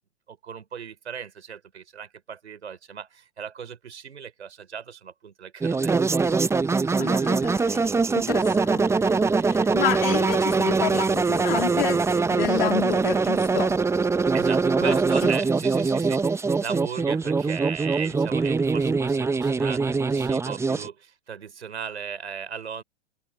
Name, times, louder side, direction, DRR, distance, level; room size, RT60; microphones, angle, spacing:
voice 1, 0.3-6.1 14.3-22.8, right 7 dB, 75° right, 5.4 m, -36 dB
sound 1, 5.6-20.9, right 4 dB, 10° right, 1.0 m, -23 dB
voice 2, 7.0-13.8 14.8-15.0, left 15 dB, 55° left, 3.9 m, -30 dB
figure-of-eight pair, 100°, 34 cm